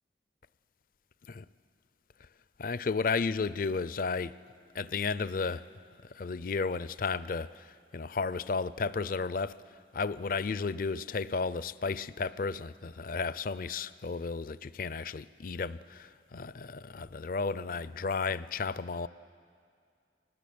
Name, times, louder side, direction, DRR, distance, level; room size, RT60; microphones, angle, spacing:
voice 1, 2.6-4.3 4.7-5.6 6.1-9.5 9.9-19.1, left 4 dB, 50° left, 0.5 m, -33 dB
24.0 x 19.0 x 8.6 m
head